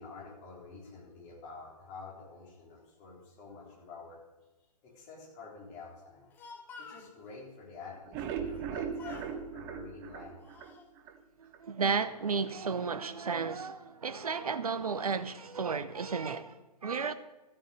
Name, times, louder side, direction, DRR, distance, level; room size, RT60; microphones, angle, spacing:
voice 1, 0.0-4.2 4.8-6.3 6.8-10.4, left 4 dB, 25° left, 3.8 m, -48 dB
Speech, 6.1-7.1 8.5-8.7 9.0-9.4 10.1-10.9, left 4 dB, 10° left, 0.8 m, -50 dB
sound 1, 7.9-11.2 11.5-11.6 12.0-12.1 12.5-12.6, right 7 dB, 15° right, 0.5 m, -38 dB
voice 2, 11.4-17.1, right 5 dB, 60° right, 0.9 m, -33 dB
13.0 x 8.9 x 6.7 m
figure-of-eight pair, 130°, 21 cm